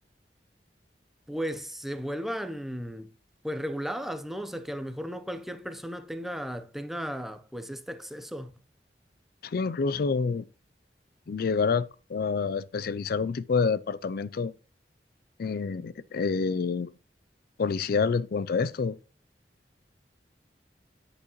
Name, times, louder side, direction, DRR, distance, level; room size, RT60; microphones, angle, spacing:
voice 1, 1.3-3.1 3.4-8.5, equal, ahead, 0.6 m, -35 dB
voice 2, 9.4-10.4 11.3-14.5 15.4-16.9 17.6-19.0, left 5 dB, 60° left, 0.4 m, -28 dB
8.4 x 8.0 x 3.0 m
head